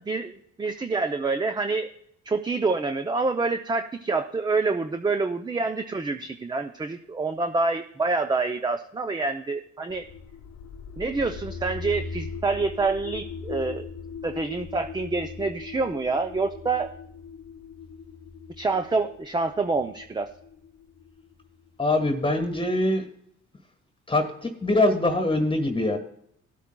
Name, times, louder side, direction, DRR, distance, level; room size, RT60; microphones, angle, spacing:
voice 1, 0.0-1.9 2.3-10.0 11.0-13.9 14.2-16.9 18.6-20.3, right 3 dB, 15° right, 7 dB, 0.5 m, -27 dB
sound 1, 9.9-21.7, left 5 dB, 60° left, 0.9 m, -40 dB
voice 2, 21.8-23.1 24.1-26.0, left 2 dB, 15° left, 7 dB, 1.4 m, -23 dB
17.0 x 8.3 x 2.2 m, 0.71 s
cardioid pair, 90°, 30 cm